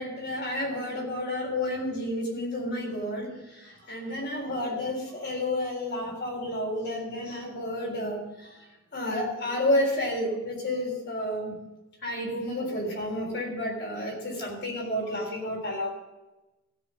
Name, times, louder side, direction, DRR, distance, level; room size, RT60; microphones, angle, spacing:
voice 1, 0.0-8.5 8.9-11.6 12.0-15.9, left 1 dB, 50° left, -1 dB, 3.7 m, -30 dB
15.5 x 5.3 x 7.4 m, 1.0 s
head